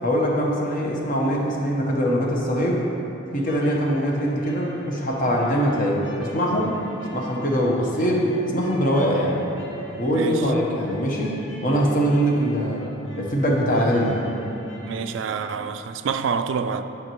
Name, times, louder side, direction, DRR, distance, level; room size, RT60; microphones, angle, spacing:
voice 1, 0.0-2.8 3.3-6.7 7.1-9.4 10.0-12.8 13.2-14.2, equal, 45° left, 1.0 m, -22 dB
sound 1, 3.3-15.6, equal, 80° left, 1.1 m, -42 dB
voice 2, 10.1-10.5 14.9-16.8, right 6 dB, 70° right, 0.3 m, -27 dB
9.7 x 5.9 x 3.0 m
head